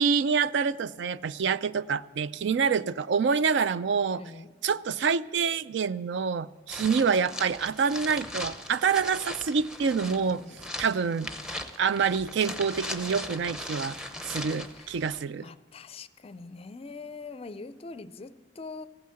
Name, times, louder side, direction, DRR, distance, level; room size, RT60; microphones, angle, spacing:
voice 1, 0.0-4.2 4.6-10.4 10.8-11.3 11.8-14.0 14.3-15.5, right 6 dB, 65° right, 17 dB, 0.4 m, -26 dB
voice 2, 4.1-4.5 10.0-10.6 14.7-14.9 15.4-18.9, left 3 dB, 30° left, 14 dB, 0.4 m, -43 dB
sound 1, 6.7-15.2, left 1 dB, 5° right, 0.7 m, -39 dB
15.0 x 9.3 x 7.6 m, 1.5 s
head